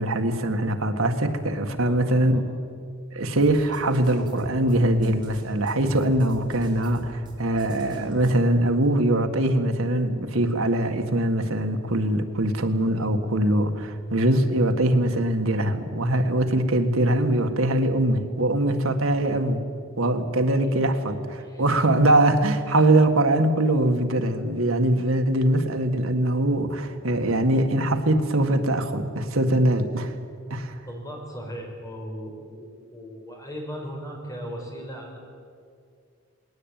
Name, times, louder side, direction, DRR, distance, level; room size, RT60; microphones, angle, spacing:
voice 1, 0.0-2.4 3.1-19.6 20.0-21.2 21.6-30.1 30.5-30.8, right 1 dB, 80° right, 6 dB, 1.8 m, -22 dB
voice 2, 1.8-2.4 20.6-20.7 21.1-21.6 30.8-35.2, equal, 15° left, 0 dB, 5.0 m, -38 dB
sound 1, 3.4-8.3, right 1 dB, 20° right, 4.6 m, -46 dB
20.5 x 18.0 x 9.1 m, 2.3 s
head